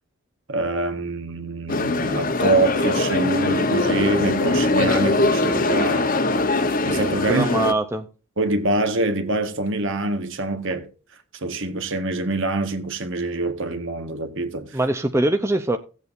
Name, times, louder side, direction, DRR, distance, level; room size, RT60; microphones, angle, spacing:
voice 1, 0.5-6.1 6.8-7.5 8.4-10.9 11.4-14.8, right 2 dB, 60° right, 1.5 m, -25 dB
Walla university, 1.7-7.7, left 2 dB, 40° left, 1.0 m, -21 dB
voice 2, 7.3-8.1 14.7-15.8, right 1 dB, 10° right, 0.6 m, -22 dB
16.5 x 8.2 x 2.6 m
head